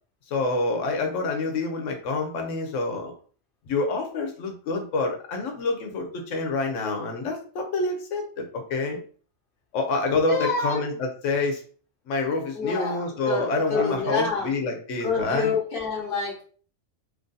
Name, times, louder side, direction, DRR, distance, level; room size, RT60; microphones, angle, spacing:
voice 1, 0.3-3.1 3.7-9.0 9.7-11.6 12.1-15.5, left 3 dB, 90° left, 3 dB, 1.0 m, -27 dB
voice 2, 10.3-10.8 12.5-14.5 15.0-16.4, left 4 dB, 50° left, -1 dB, 1.2 m, -27 dB
3.0 x 2.6 x 3.8 m, 0.42 s
omnidirectional pair, 1.2 m